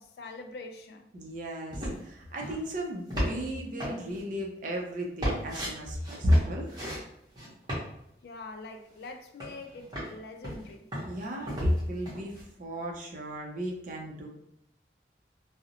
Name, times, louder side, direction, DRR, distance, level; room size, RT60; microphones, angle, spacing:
voice 1, 0.0-1.1 8.2-10.9, left 3 dB, 60° left, 0.3 m, -44 dB
voice 2, 1.1-6.8 11.1-12.3 12.6-14.3, equal, 50° right, 0.5 m, -32 dB
sound 1, 1.7-2.1 2.4-2.7 3.1-3.5 3.8-4.2 5.2-5.7 6.0-7.0 7.4-7.8 9.0-9.1 9.4-10.1 10.4-11.8 12.1-12.4, equal, 25° right, 0.9 m, -34 dB
2.5 x 2.0 x 2.7 m
head